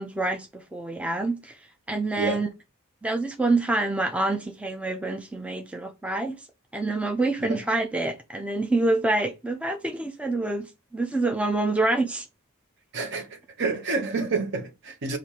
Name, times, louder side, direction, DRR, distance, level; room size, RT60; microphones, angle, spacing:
voice 1, 0.0-2.5 3.0-6.4 6.7-12.3, right 2 dB, 5° right, 0.4 m, -27 dB
voice 2, 2.1-2.4 7.4-7.6 12.9-15.2, right 3 dB, 55° right, 0.8 m, -29 dB
6.3 x 2.5 x 2.8 m
head